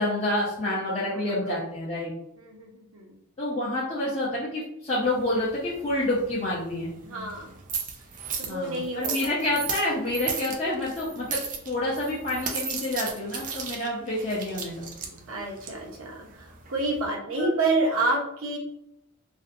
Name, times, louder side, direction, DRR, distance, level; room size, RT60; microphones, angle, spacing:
voice 1, 0.0-2.1 3.4-6.9 8.5-11.4 11.7-15.1 17.4-17.5, left 1 dB, 30° left, -8 dB, 0.5 m, -28 dB
voice 2, 2.4-3.2 7.0-7.5 8.4-9.3 15.3-18.6, right 2 dB, 70° right, -1 dB, 0.7 m, -29 dB
sound 1, 5.0-17.1, right 6 dB, 40° right, 0.4 m, -36 dB
2.5 x 2.1 x 2.5 m, 0.81 s
head